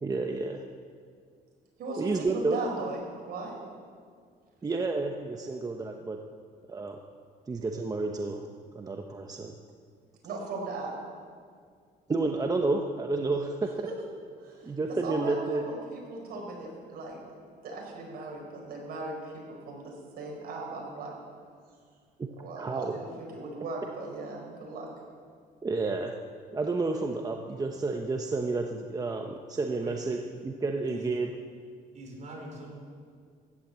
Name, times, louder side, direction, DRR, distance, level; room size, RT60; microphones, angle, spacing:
voice 1, 0.0-0.6 2.0-2.6 4.6-6.2 6.7-7.0 7.5-8.5 8.7-9.6 12.1-13.9 14.6-15.6 22.2-22.3 22.6-23.0 25.6-26.2 26.5-30.2 30.4-31.3, right 3 dB, 20° right, 3 dB, 0.9 m, -30 dB
voice 2, 1.8-3.6 10.2-10.9 13.9-14.0 14.4-14.7 15.0-15.3 15.6-17.2 17.6-21.1 22.4-24.9, right 3 dB, 65° right, -1 dB, 5.1 m, -38 dB
voice 3, 29.8-30.2 30.8-31.0 31.9-32.7, right 1 dB, 45° right, -1 dB, 5.0 m, -43 dB
15.5 x 11.0 x 7.5 m, 2.1 s
cardioid pair, 110°, 17 cm